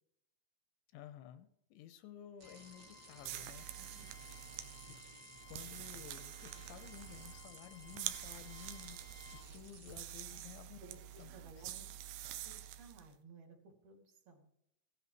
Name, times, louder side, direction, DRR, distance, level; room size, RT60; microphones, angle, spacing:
voice 1, 0.9-3.7 4.9-5.0 5.5-9.0 9.5-10.8 11.2-11.3 11.6-11.7, left 11 dB, 85° left, 10 dB, 3.0 m, -53 dB
Bowed string instrument, 2.4-9.5, left 5 dB, 65° left, 1.3 m, -60 dB
sound 1, 2.4-10.0, right 3 dB, 45° right, 1.4 m, -58 dB
sound 2, 3.2-13.1, right 12 dB, 90° right, 2.2 m, -47 dB
voice 2, 3.8-4.1 10.3-10.4 10.8-11.9 12.4-14.5, right 3 dB, 60° right, 2 dB, 4.1 m, -58 dB
16.5 x 13.5 x 3.1 m, 0.80 s
omnidirectional pair, 5.3 m